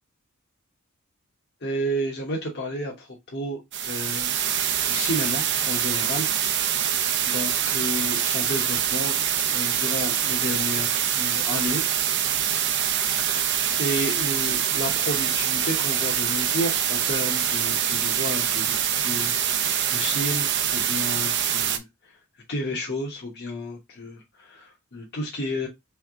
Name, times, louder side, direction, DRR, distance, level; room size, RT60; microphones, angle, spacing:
voice 1, 1.6-4.3 4.9-6.3 7.2-9.2 9.5-11.8 13.2-13.5 13.8-21.8 22.5-25.7, equal, 55° left, 1.1 m, -31 dB
sound 1, 3.7-21.8, right 9 dB, 55° right, 0.6 m, -24 dB
3.5 x 3.4 x 3.6 m
head